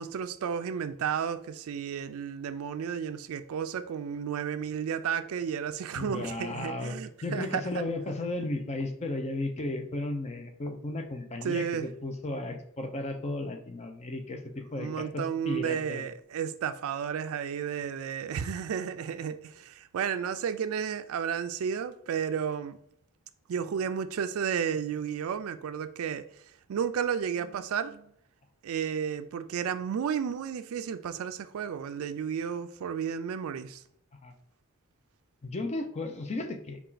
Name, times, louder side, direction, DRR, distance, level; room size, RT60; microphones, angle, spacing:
voice 1, 0.0-7.8 11.4-11.9 14.7-22.8 23.5-26.2 26.7-28.1 28.6-33.8, right 7 dB, 70° right, 0.3 m, -32 dB
voice 2, 5.9-16.0 34.2-34.3 35.4-36.8, left 2 dB, 30° left, 0.5 m, -34 dB
4.3 x 2.4 x 3.9 m
head